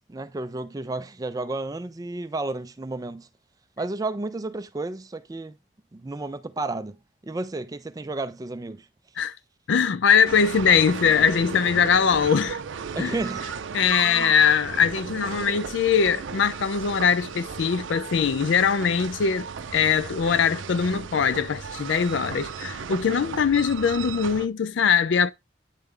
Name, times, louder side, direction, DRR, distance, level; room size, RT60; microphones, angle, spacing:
voice 1, 0.1-3.3 3.8-5.6 5.9-7.0 7.2-8.9 12.9-13.5 13.9-14.3, right 2 dB, 20° right, 0.3 m, -32 dB
voice 2, 9.7-12.6 13.0-13.1 13.7-19.5 19.7-25.3, left 7 dB, 70° left, 0.4 m, -21 dB
sound 1, 10.2-24.5, right 6 dB, 80° right, 0.5 m, -35 dB
9.1 x 3.2 x 3.7 m
head